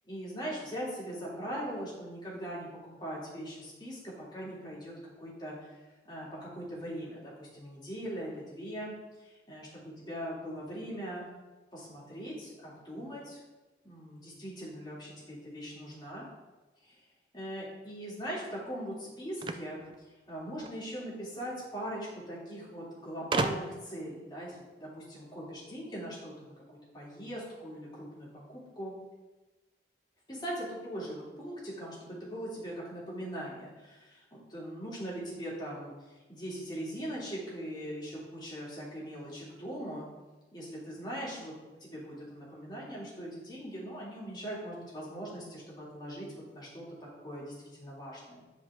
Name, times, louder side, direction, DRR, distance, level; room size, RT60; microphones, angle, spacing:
voice 1, 0.1-5.6 6.0-8.9 9.2-11.3 11.7-13.4 13.8-16.3 16.8-17.0 17.3-19.8 20.3-28.9 30.3-40.1 40.5-41.5 41.8-46.3 46.5-48.4, equal, 25° left, -6 dB, 2.5 m, -40 dB
sound 1, 19.4-20.8 21.9-22.0 22.2-22.3 23.3-24.0, right 3 dB, 25° right, 0.3 m, -33 dB
9.6 x 4.9 x 3.6 m, 1.2 s
head